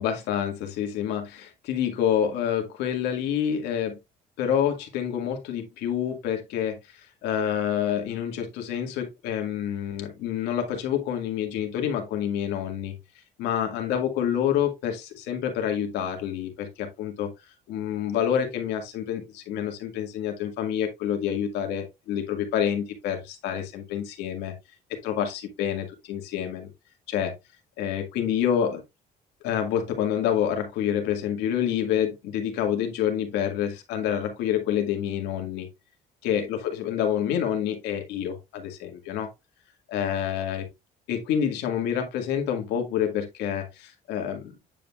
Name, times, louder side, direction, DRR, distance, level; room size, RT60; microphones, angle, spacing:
voice 1, 0.0-4.0 4.4-12.9 13.4-17.3 17.7-24.5 25.0-26.7 27.1-27.3 27.8-28.8 29.4-35.7 36.2-39.3 39.9-40.7 41.1-44.5, left 9 dB, 90° left, 1.9 m, -27 dB
9.1 x 5.2 x 2.4 m
cardioid pair, 110°, 17 cm